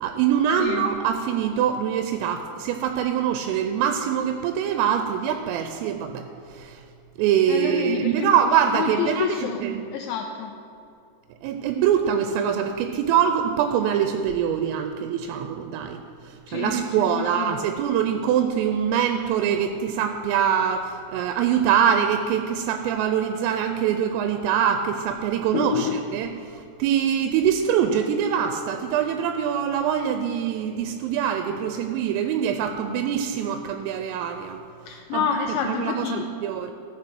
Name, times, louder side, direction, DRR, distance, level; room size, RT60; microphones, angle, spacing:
voice 1, 0.0-6.3 6.5-6.8 7.2-9.8 11.4-16.0 16.2-26.3 26.8-34.6 35.1-35.2 35.7-36.7, right 8 dB, 85° right, 6 dB, 3.2 m, -24 dB
voice 2, 7.5-8.4 8.7-9.6 9.9-10.5 16.5-17.6 25.5-26.0 34.9-36.3, left 8 dB, 90° left, 2 dB, 2.6 m, -28 dB
13.5 x 6.1 x 6.0 m, 2.6 s
omnidirectional pair, 5.9 m